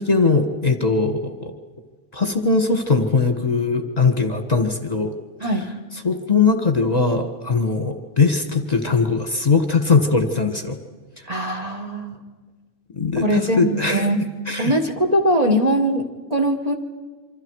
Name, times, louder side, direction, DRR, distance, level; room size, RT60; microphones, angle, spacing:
voice 1, 0.0-1.5 2.1-5.1 6.0-10.8 13.0-14.0 14.5-14.7, left 4 dB, 30° left, 6 dB, 1.6 m, -20 dB
voice 2, 11.3-12.2 13.2-14.2 14.6-16.7, right 1 dB, 30° right, 3 dB, 1.6 m, -21 dB
27.5 x 25.5 x 4.8 m, 1.4 s
omnidirectional pair, 1.4 m